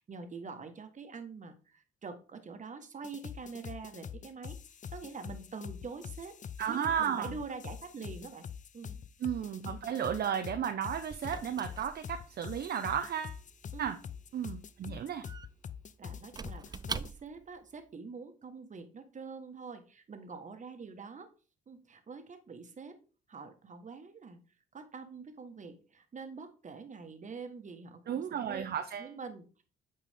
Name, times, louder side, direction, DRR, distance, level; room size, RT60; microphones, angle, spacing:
voice 1, 0.0-4.6 4.9-6.4 6.7-8.5 8.7-9.0 13.7-14.0 16.0-21.3 21.7-23.0 23.3-24.4 24.7-28.6 29.0-29.6, right 4 dB, 40° right, 7 dB, 1.5 m, -45 dB
sound 1, 3.0-17.1, left 7 dB, 40° left, 0.5 m, -45 dB
voice 2, 6.6-7.3 9.2-13.4 13.8-14.0 14.3-15.3 28.1-29.1, right 8 dB, 55° right, 7 dB, 0.7 m, -34 dB
Squeak / Wood, 10.4-17.6, right 5 dB, 20° right, 0.3 m, -46 dB
8.4 x 4.5 x 3.5 m, 0.36 s
cardioid pair, 90°, 20 cm